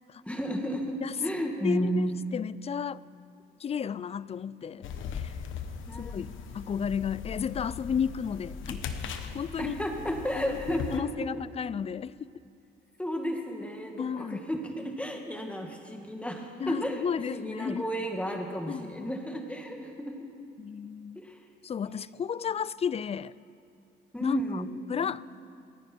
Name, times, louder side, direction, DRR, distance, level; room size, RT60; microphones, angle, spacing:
voice 1, 0.3-2.1 5.9-6.2 9.6-11.3 13.0-20.3 21.2-21.4 21.8-22.0 24.1-24.7, equal, 5° left, 2.1 m, -33 dB
voice 2, 1.6-3.0 3.6-4.8 5.1-5.3 6.0-8.9 9.3-9.7 10.4-12.3 14.0-14.4 16.6-17.8 18.7-19.1 20.6-21.2 21.6-23.3 24.2-24.6 24.9-25.2, left 7 dB, 30° left, 0.4 m, -33 dB
sound 1, 4.8-11.0, left 7 dB, 80° left, 1.2 m, -39 dB
28.5 x 10.0 x 4.7 m
cardioid pair, 90°, 20 cm